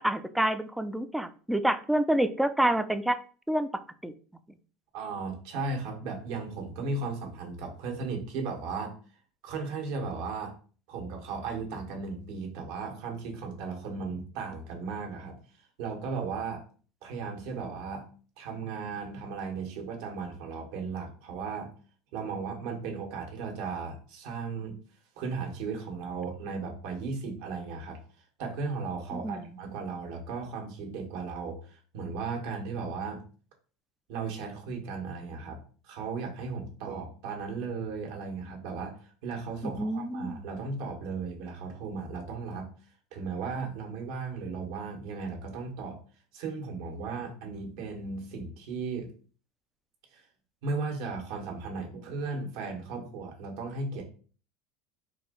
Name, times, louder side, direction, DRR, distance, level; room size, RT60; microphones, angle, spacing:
voice 1, 0.0-3.2 3.5-3.7 4.0-4.1 29.1-29.5 39.8-40.3, right 1 dB, 5° right, 11 dB, 0.4 m, -27 dB
voice 2, 4.9-9.0 9.4-10.6 10.9-15.4 15.8-16.6 17.0-18.1 18.4-21.7 22.1-24.8 25.2-28.0 28.4-33.2 34.1-42.7 43.1-46.0 46.3-49.1 50.1-50.2 50.6-54.0, right 4 dB, 70° right, 2 dB, 1.5 m, -36 dB
4.2 x 2.8 x 3.8 m, 0.40 s
supercardioid pair, 140°, 2 cm